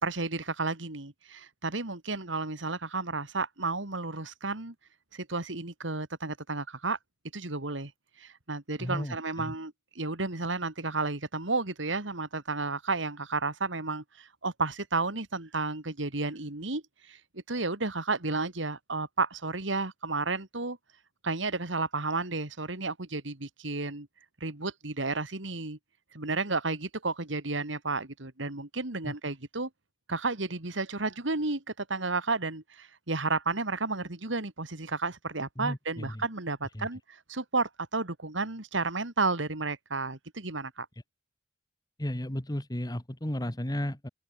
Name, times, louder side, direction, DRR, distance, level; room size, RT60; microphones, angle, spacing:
voice 1, 0.0-4.7 5.1-7.0 7.3-7.9 8.2-20.8 21.2-24.1 24.4-25.8 26.1-29.7 30.1-40.9, right 3 dB, 75° right, 2.7 m, -32 dB
voice 2, 8.8-9.5 29.0-29.1 35.6-36.2 36.8-36.9 42.0-44.1, left 1 dB, 20° left, 1.7 m, -34 dB
open air
head